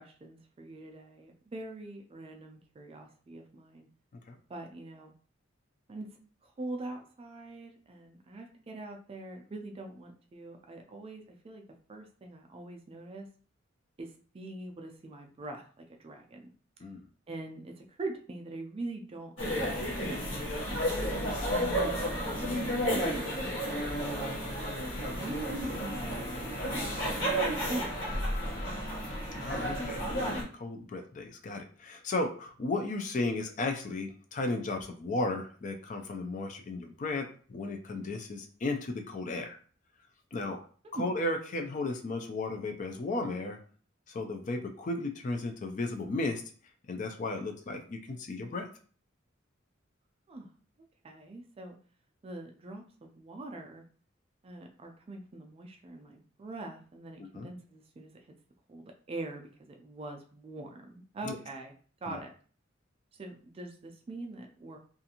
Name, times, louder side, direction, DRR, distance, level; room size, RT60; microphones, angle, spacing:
voice 1, 0.0-3.9 4.5-5.1 5.9-6.1 6.4-11.6 11.9-13.3 14.0-16.5 17.3-20.2 20.5-24.4 25.1-27.4 27.7-28.3 40.8-41.0 50.3-50.5 51.0-51.8 52.2-53.8 54.4-58.3 58.7-61.7 62.0-62.3 63.1-64.8, right 2 dB, 30° right, 3 dB, 0.3 m, -43 dB
sound 1, 19.4-30.4, equal, 70° left, 0.9 m, -32 dB
voice 2, 29.4-39.6 40.3-40.6 41.0-43.6 44.1-46.4 46.9-48.7 57.2-57.5 61.2-61.4 62.1-62.2, left 2 dB, 40° left, 4 dB, 0.4 m, -34 dB
2.5 x 2.4 x 2.8 m, 0.43 s
head